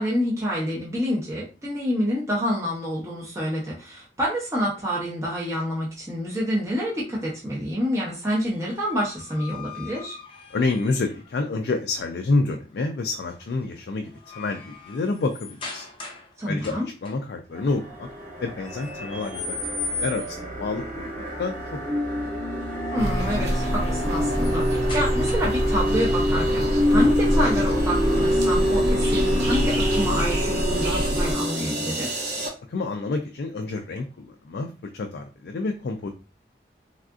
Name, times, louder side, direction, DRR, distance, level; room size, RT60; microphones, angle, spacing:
voice 1, 0.0-10.2 16.4-16.9 22.9-32.1, equal, 15° right, -5 dB, 0.7 m, -28 dB
sound 1, 8.4-11.3 13.1-13.5 13.9-16.3 16.6-17.1 18.6-20.5 22.8-25.7, left 3 dB, 30° left, 0.6 m, -38 dB
voice 2, 10.5-15.9 16.4-18.1 18.4-19.7 20.0-22.0 32.7-36.1, left 3 dB, 65° left, 4 dB, 0.4 m, -28 dB
sound 2, 17.5-32.5, equal, 45° right, 1.3 m, -26 dB
sound 3, 23.0-31.3, equal, 70° right, 0.7 m, -26 dB
3.5 x 2.4 x 2.4 m, 0.32 s
head